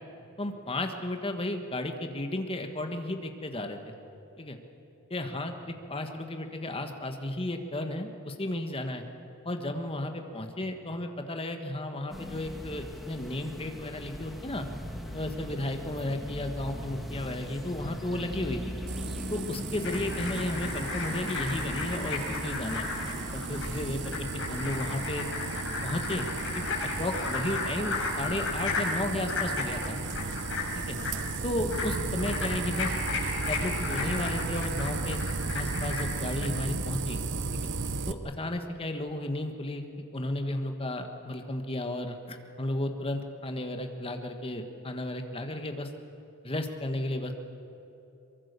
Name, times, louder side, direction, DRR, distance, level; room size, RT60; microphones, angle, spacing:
voice 1, 0.4-4.0 4.4-4.6 5.1-9.0 9.4-14.7 15.1-18.8 19.3-22.9 23.3-25.3 25.8-26.3 26.5-26.6 27.0-30.0 30.7-31.0 31.4-32.9 33.5-35.2 35.5-37.2 38.1-39.8 40.1-45.9 46.4-47.3, left 1 dB, 25° left, 5 dB, 1.6 m, -33 dB
sound 1, 12.1-24.2, equal, ahead, 2.2 m, -39 dB
sound 2, 18.9-38.1, right 4 dB, 60° right, 1.0 m, -35 dB
sound 3, 19.8-36.5, left 3 dB, 65° left, 7.0 m, -35 dB
23.0 x 23.0 x 6.9 m, 2.9 s
head